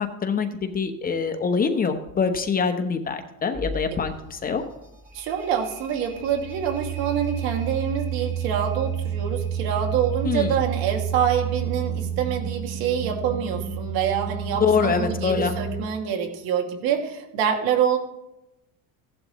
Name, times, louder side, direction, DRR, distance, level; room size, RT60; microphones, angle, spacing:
voice 1, 0.0-4.6 10.2-10.5 14.6-15.6, left 5 dB, 25° left, 7 dB, 1.0 m, -24 dB
sound 1, 3.5-15.8, right 7 dB, 25° right, 2.9 m, -30 dB
voice 2, 5.1-18.0, right 8 dB, 70° right, 3 dB, 2.4 m, -26 dB
16.0 x 11.0 x 3.1 m, 0.91 s
cardioid pair, 135°, 38 cm